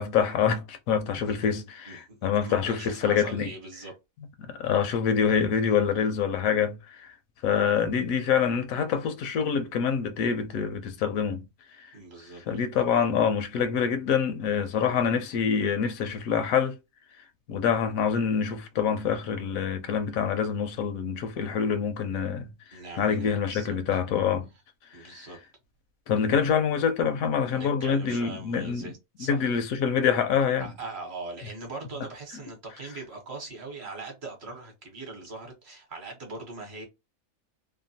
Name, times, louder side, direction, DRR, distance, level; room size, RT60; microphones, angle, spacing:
voice 1, 0.0-3.5 4.5-7.1 7.4-11.4 12.5-16.7 17.5-22.5 23.0-24.5 25.0-25.1 26.1-28.9 29.2-30.7, left 7 dB, 75° left, 1.0 m, -26 dB
voice 2, 1.9-3.9 11.9-12.4 22.7-24.0 24.9-25.4 27.5-29.5 30.6-36.9, right 3 dB, 50° right, 1.1 m, -41 dB
2.9 x 2.2 x 2.6 m
omnidirectional pair, 1.5 m